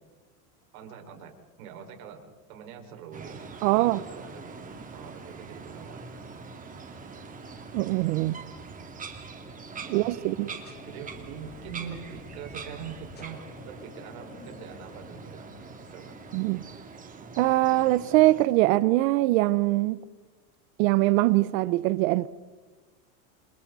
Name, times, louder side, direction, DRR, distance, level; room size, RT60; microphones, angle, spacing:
voice 1, 0.7-1.3 1.6-6.2 9.8-10.3 10.7-15.5 15.9-16.2, right 8 dB, 85° right, 5.2 m, -44 dB
sound 1, 3.1-18.5, right 4 dB, 20° right, 2.5 m, -43 dB
voice 2, 3.6-4.0 7.7-8.4 9.9-10.5 16.3-16.6 17.4-20.0 20.8-22.3, right 18 dB, 70° right, 0.8 m, -22 dB
sound 2, 10.6-16.6, left 5 dB, 25° left, 2.6 m, -51 dB
29.5 x 28.5 x 4.1 m
supercardioid pair, 150°, 42 cm